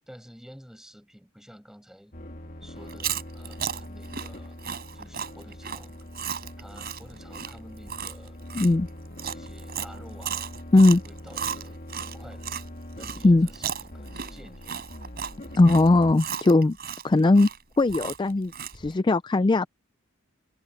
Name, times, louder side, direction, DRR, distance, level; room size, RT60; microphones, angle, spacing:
voice 1, 0.1-2.1 2.6-4.6 4.9-6.0 6.6-8.4 9.2-10.6 11.0-12.5 13.0-14.8, equal, ahead, 6.7 m, -50 dB
sound 1, 2.1-16.1, left 1 dB, 40° left, 2.8 m, -42 dB
Chewing mastication, 2.8-12.6 13.0-18.9, right 8 dB, 50° right, 4.3 m, -35 dB
voice 2, 8.5-8.9 10.7-11.0 13.2-13.5 15.6-16.8 17.0-17.5 17.8-19.7, left 2 dB, 20° left, 0.4 m, -19 dB
head